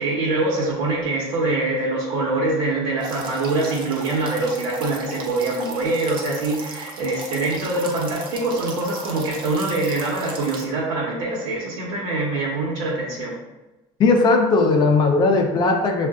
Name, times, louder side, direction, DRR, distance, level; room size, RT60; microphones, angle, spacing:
voice 1, 0.0-13.4, right 2 dB, 75° right, -6 dB, 1.0 m, -24 dB
sound 1, 3.0-10.6, right 3 dB, 45° right, 0.6 m, -37 dB
voice 2, 14.0-16.1, left 3 dB, 35° left, 3 dB, 0.5 m, -17 dB
6.4 x 2.5 x 2.4 m, 1.0 s
cardioid pair, 155°, 12 cm